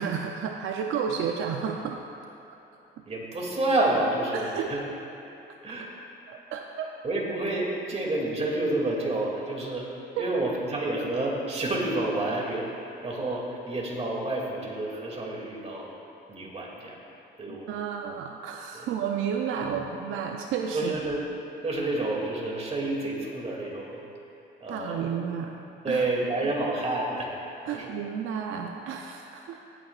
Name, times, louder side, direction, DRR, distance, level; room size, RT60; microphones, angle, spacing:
voice 1, 0.0-2.0 3.0-3.1 4.3-4.7 6.3-6.9 10.2-10.3 17.5-20.9 24.7-26.0 26.4-26.5 27.7-29.6, right 7 dB, 85° right, 2 dB, 0.6 m, -32 dB
voice 2, 3.0-4.8 5.3-5.4 5.6-5.9 7.0-9.9 10.2-15.9 16.3-17.0 17.4-17.7 18.7-18.9 19.6-19.8 20.7-21.3 21.6-24.0 24.6-25.1 25.8-27.9, right 2 dB, 30° right, -2 dB, 2.4 m, -29 dB
16.5 x 8.8 x 2.4 m, 2.9 s
cardioid pair, 90°, 20 cm